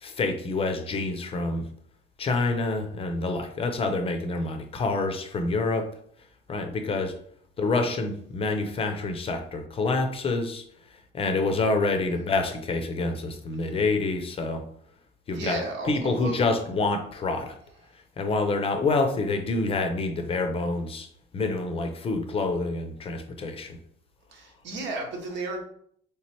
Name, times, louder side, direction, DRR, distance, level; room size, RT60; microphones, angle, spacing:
voice 1, 0.0-1.6 2.2-5.9 6.5-7.2 7.6-10.6 10.9-14.6 15.3-17.6 18.2-21.1 21.3-23.8, left 3 dB, 30° left, 6 dB, 0.5 m, -27 dB
voice 2, 15.3-16.6 24.3-25.6, right 2 dB, 85° right, 1 dB, 1.2 m, -34 dB
3.3 x 3.0 x 4.3 m, 0.64 s
cardioid pair, 170°, 18 cm